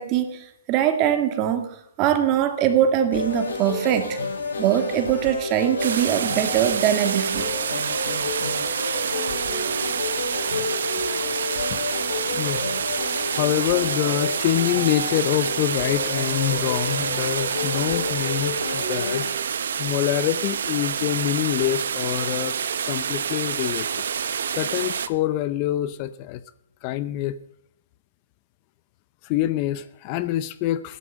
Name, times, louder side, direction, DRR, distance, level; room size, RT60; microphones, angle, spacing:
voice 1, 0.0-1.7 2.0-4.2 4.6-7.5, right 10 dB, 30° right, 8 dB, 1.9 m, -22 dB
sound 1, 3.1-19.3, left 3 dB, 85° left, 7.3 m, -30 dB
sound 2, 5.8-25.1, right 7 dB, 65° right, 1.0 m, -27 dB
voice 2, 12.3-12.7 13.3-19.3 19.8-22.6 22.8-24.0 24.5-26.4 26.8-27.4 29.2-31.0, left 14 dB, 30° left, 15 dB, 0.7 m, -25 dB
15.0 x 11.5 x 7.5 m, 0.80 s
hypercardioid pair, 145°, 0 cm